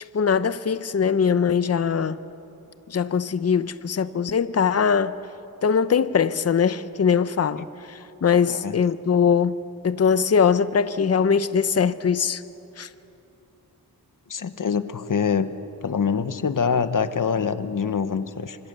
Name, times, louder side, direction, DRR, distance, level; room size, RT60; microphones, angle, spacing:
voice 1, 0.1-2.2 2.9-5.2 5.6-9.6 9.8-12.4 12.8-12.9, left 6 dB, 40° left, 0.7 m, -21 dB
voice 2, 8.5-8.8 14.3-15.5 15.8-18.6, left 6 dB, 60° left, 1.2 m, -25 dB
29.0 x 25.5 x 6.9 m
wide cardioid pair, 110°, 37 cm